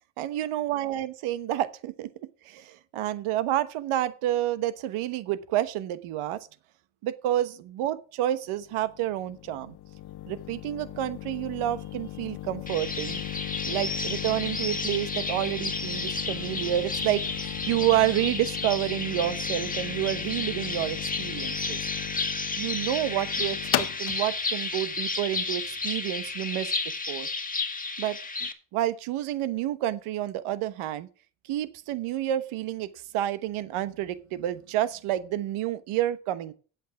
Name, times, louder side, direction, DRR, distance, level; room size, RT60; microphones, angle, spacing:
voice 1, 0.2-2.1 2.4-6.5 7.0-9.7 10.3-13.2 13.7-21.8 22.6-26.8 27.1-27.3 28.0-28.2 28.7-31.1 31.4-36.5, right 13 dB, 75° right, 1.1 m, -29 dB
sound 1, 8.6-26.3, left 14 dB, 50° left, 0.7 m, -37 dB
sound 2, 12.7-28.5, left 3 dB, 15° left, 1.7 m, -32 dB
9.3 x 7.9 x 6.1 m
supercardioid pair, 75°, 50 cm